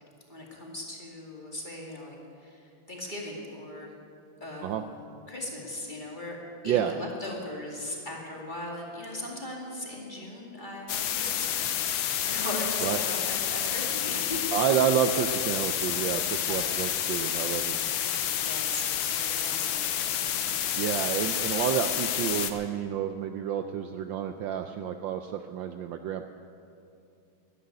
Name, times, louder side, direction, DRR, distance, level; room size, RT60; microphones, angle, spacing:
voice 1, 0.3-3.9 4.4-6.4 6.6-14.6 16.5-16.7 18.4-20.6, left 1 dB, 20° left, -2 dB, 2.3 m, -39 dB
sound 1, 10.9-22.5, left 10 dB, 85° left, 1.7 m, -29 dB
voice 2, 14.5-17.8 20.7-26.3, right 9 dB, 70° right, 7 dB, 1.2 m, -29 dB
12.0 x 11.5 x 9.1 m, 2.5 s
omnidirectional pair, 2.4 m